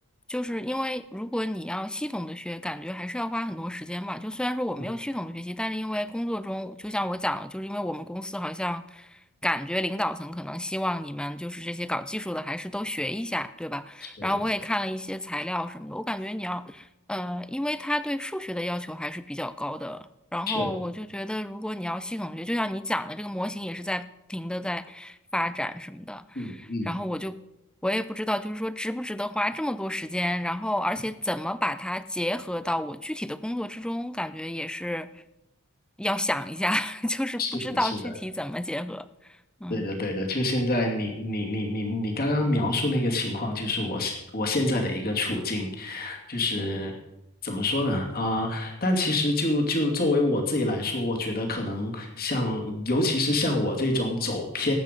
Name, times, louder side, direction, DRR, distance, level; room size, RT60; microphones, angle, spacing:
voice 1, 0.3-27.4 27.8-35.2 36.0-39.9, left 1 dB, 5° left, 14 dB, 0.5 m, -31 dB
voice 2, 26.4-26.9 37.4-37.5 37.8-37.9 39.7-46.9 47.4-54.7, left 1 dB, 45° left, 2 dB, 2.5 m, -27 dB
18.5 x 8.4 x 5.2 m, 0.89 s
head